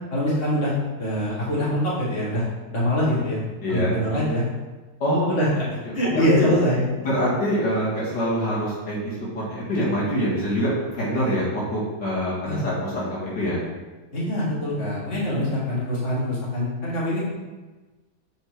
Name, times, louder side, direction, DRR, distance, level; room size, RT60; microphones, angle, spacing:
voice 1, 0.1-2.4 2.7-3.4 3.7-4.4 5.3-5.7 5.9-6.8 12.4-12.7 14.1-17.2, left 1 dB, 30° left, -7 dB, 2.1 m, -24 dB
voice 2, 3.6-4.0 5.0-5.3 5.9-6.5 7.0-9.1 9.5-13.6, equal, 65° left, -7 dB, 2.4 m, -25 dB
7.7 x 4.5 x 4.6 m, 1.2 s
omnidirectional pair, 2.1 m